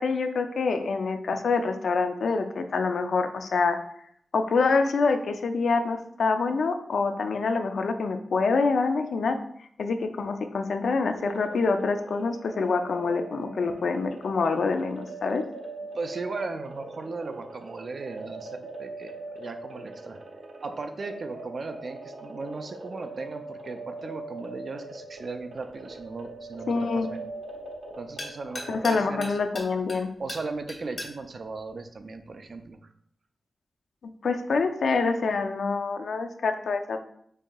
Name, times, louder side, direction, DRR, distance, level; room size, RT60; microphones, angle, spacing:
voice 1, 0.0-3.8 4.3-9.4 9.8-15.4 26.7-27.1 28.7-30.1 34.2-37.0, left 4 dB, 75° left, 7 dB, 0.4 m, -26 dB
sound 1, 11.2-29.6, right 2 dB, 75° right, 0.7 m, -42 dB
voice 2, 15.9-20.2 20.6-27.2 28.0-29.3 30.2-32.8, right 3 dB, 45° right, 8 dB, 0.4 m, -37 dB
sound 2, 25.1-32.7, left 2 dB, 55° left, 1.4 m, -44 dB
5.4 x 3.6 x 2.3 m, 0.68 s
wide cardioid pair, 165°, 0 cm